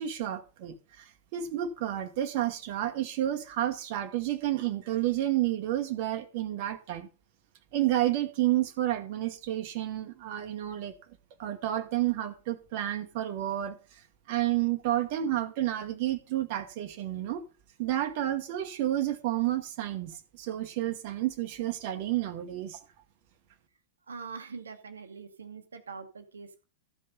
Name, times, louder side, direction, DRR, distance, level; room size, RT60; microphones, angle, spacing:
voice 1, 0.0-7.1 7.7-10.9 11.4-13.8 14.3-17.4 17.8-22.8, right 13 dB, 50° right, 1.1 m, -30 dB
voice 2, 15.1-15.5 24.1-26.6, right 5 dB, 70° right, 1.1 m, -44 dB
13.5 x 5.5 x 5.3 m
figure-of-eight pair, 90°, 0 cm